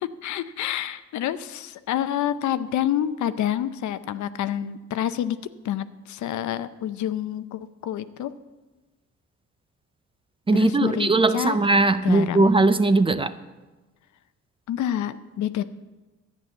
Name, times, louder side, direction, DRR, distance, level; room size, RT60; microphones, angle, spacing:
voice 1, 0.0-5.4 5.6-8.3 10.5-11.6 12.0-12.5 14.7-15.6, left 11 dB, 70° left, 12 dB, 0.7 m, -28 dB
voice 2, 10.5-13.3, right 3 dB, 20° right, 13 dB, 0.5 m, -19 dB
11.0 x 9.0 x 7.1 m, 1.2 s
cardioid pair, 90°, 30 cm